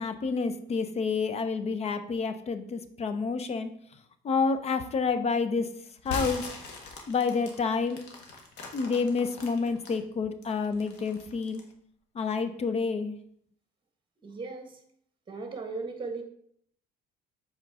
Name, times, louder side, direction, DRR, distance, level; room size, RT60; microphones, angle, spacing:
voice 1, 0.0-3.7 4.2-5.7 6.0-6.5 7.1-8.0 8.7-11.6 12.1-13.2, left 4 dB, 40° left, 10 dB, 0.6 m, -29 dB
sound 1, 6.0-10.0 10.4-11.7, left 3 dB, 80° left, 1.5 m, -40 dB
voice 2, 14.2-14.8 15.3-16.2, right 3 dB, 30° right, 5 dB, 1.4 m, -37 dB
7.6 x 4.5 x 3.5 m, 0.65 s
cardioid pair, 110°, 17 cm